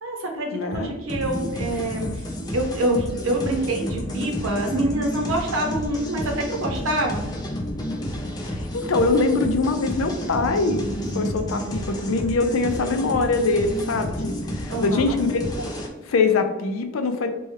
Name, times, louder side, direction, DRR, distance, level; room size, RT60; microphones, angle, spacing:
voice 1, 0.0-2.1 2.5-7.2 14.7-15.2, right 1 dB, 65° right, 2 dB, 0.8 m, -26 dB
voice 2, 0.5-0.9 8.4-15.7 16.0-17.3, left 3 dB, 70° left, 7 dB, 0.5 m, -23 dB
sound 1, 1.1-15.9, equal, 20° left, 0.5 m, -30 dB
4.2 x 2.3 x 3.2 m, 1.1 s
head